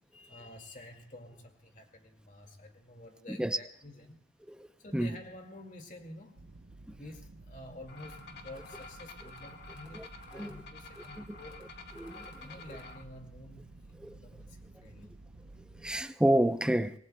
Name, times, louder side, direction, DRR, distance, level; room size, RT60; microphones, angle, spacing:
voice 1, 0.1-4.2 4.8-6.6 7.0-11.8 12.4-15.2, left 1 dB, 40° left, 2.1 m, -50 dB
sound 1, 6.3-16.0, right 2 dB, 75° right, 0.8 m, -53 dB
sound 2, 7.9-13.0, left 3 dB, 55° left, 1.9 m, -50 dB
voice 2, 12.0-12.3 14.0-14.1 15.8-16.9, right 1 dB, 5° right, 0.5 m, -28 dB
26.5 x 20.0 x 2.2 m
head